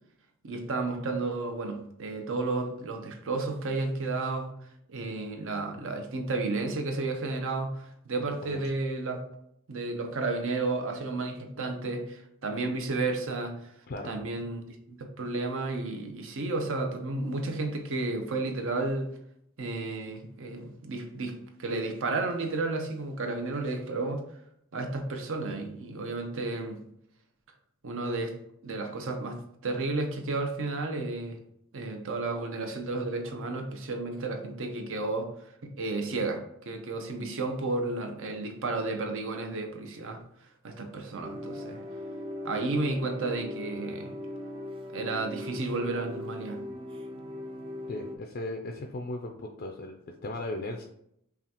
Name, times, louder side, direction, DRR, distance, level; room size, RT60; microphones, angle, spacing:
voice 1, 0.4-4.5 4.9-9.3 9.7-13.5 14.0-19.1 19.6-24.2 24.7-26.8 27.8-28.4 28.6-31.4 31.7-35.3 35.6-40.2 40.6-41.8 42.4-44.1 44.9-46.6, right 3 dB, 60° right, 4 dB, 0.7 m, -32 dB
voice 2, 8.4-8.8 13.9-14.1 47.9-50.8, left 2 dB, 45° left, 2 dB, 0.4 m, -37 dB
Loreta Organ, 41.2-48.2, left 1 dB, 25° right, 0.4 m, -39 dB
5.6 x 2.4 x 2.9 m, 0.74 s
head